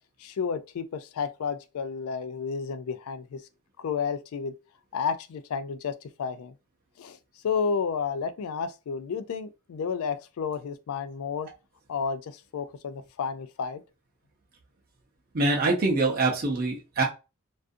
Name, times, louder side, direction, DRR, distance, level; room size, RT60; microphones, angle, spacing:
voice 1, 0.2-3.4 3.8-4.5 4.9-6.5 7.0-7.2 7.4-11.5 11.9-13.8, left 6 dB, 70° left, 0.3 m, -31 dB
voice 2, 15.3-17.0, right 2 dB, 40° right, 0.6 m, -24 dB
2.4 x 2.4 x 2.6 m
head